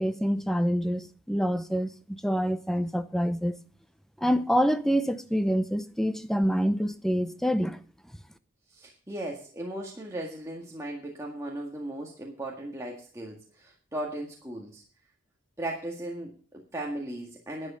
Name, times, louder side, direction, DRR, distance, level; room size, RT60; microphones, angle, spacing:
voice 1, 0.0-3.6 4.2-7.8, equal, ahead, 0.7 m, -26 dB
voice 2, 8.7-14.8 15.6-17.8, right 1 dB, 15° right, 1.9 m, -37 dB
11.5 x 9.9 x 5.0 m
head